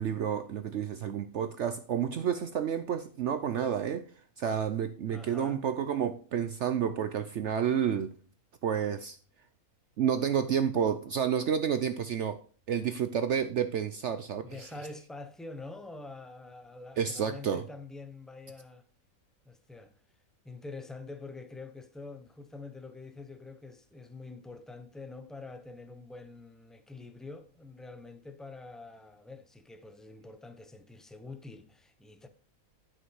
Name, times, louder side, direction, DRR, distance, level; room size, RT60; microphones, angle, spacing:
voice 1, 0.0-4.1 4.4-8.1 8.6-9.2 10.0-12.4 12.7-14.7 17.0-17.6, right 8 dB, 60° right, 0.9 m, -30 dB
voice 2, 5.1-5.6 14.4-18.8 19.4-20.0 20.4-32.3, left 3 dB, ahead, 0.5 m, -46 dB
11.0 x 5.9 x 4.8 m
omnidirectional pair, 1.5 m